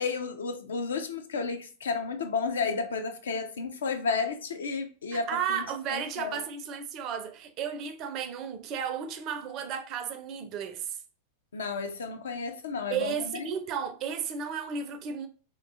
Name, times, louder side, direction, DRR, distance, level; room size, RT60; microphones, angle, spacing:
voice 1, 0.0-5.6 5.9-6.4 11.5-13.5, left 4 dB, 65° left, 0.4 m, -32 dB
voice 2, 5.1-11.0 12.9-15.3, right 7 dB, 35° right, 0.4 m, -33 dB
2.8 x 2.2 x 2.5 m
figure-of-eight pair, 90°, 0 cm